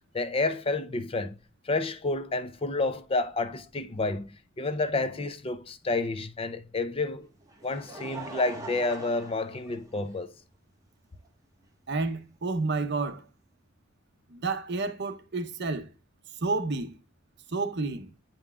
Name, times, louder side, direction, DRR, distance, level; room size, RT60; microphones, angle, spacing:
voice 1, 0.1-1.4 1.6-4.3 4.6-7.3 7.6-10.3, left 3 dB, 30° left, 0.5 m, -30 dB
Laughter, 7.2-10.4 11.2-11.3 12.8-12.9, right 3 dB, 15° right, 1.4 m, -43 dB
voice 2, 11.9-13.2 14.3-15.9 16.4-17.0 17.5-18.1, right 3 dB, 60° right, 0.9 m, -30 dB
9.3 x 5.3 x 2.4 m
head